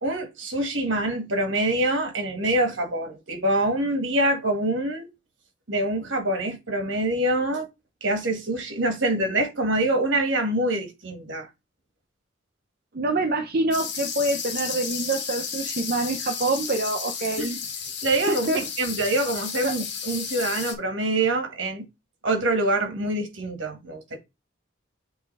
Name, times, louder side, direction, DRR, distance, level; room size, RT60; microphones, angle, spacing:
voice 1, 0.0-5.1 5.7-7.7 8.0-11.5 17.4-17.5 18.0-21.8 22.2-24.2, right 1 dB, 75° right, 1.8 m, -25 dB
voice 2, 12.9-17.5 18.3-18.6 19.6-19.7, right 2 dB, 50° right, 0.6 m, -26 dB
sound 1, 13.7-20.7, left 6 dB, 60° left, 1.5 m, -33 dB
8.1 x 3.4 x 3.3 m
head